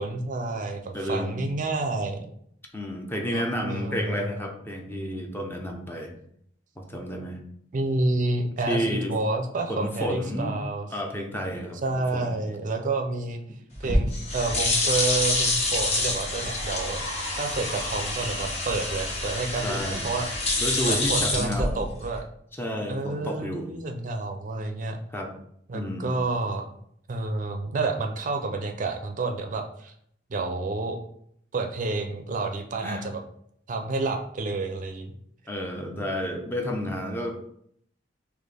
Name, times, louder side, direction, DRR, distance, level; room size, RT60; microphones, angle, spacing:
voice 1, 0.0-2.3 3.3-4.3 7.7-10.9 11.8-13.4 13.8-17.0 17.4-20.3 20.8-22.2 22.9-25.0 25.7-26.6 27.1-29.9 30.3-31.0 31.5-33.2 33.7-35.1, right 3 dB, 45° right, 4 dB, 0.5 m, -29 dB
voice 2, 0.9-1.5 2.7-6.2 6.8-7.4 8.7-9.1 9.7-10.5 10.9-12.4 13.8-14.1 19.6-20.1 20.6-21.9 22.5-23.7 25.1-25.3 25.7-26.1 32.8-33.1 35.5-37.4, equal, 10° left, 2 dB, 0.5 m, -31 dB
sound 1, 13.7-22.2, left 2 dB, 35° left, 1.0 m, -27 dB
4.2 x 2.8 x 3.3 m, 0.68 s
head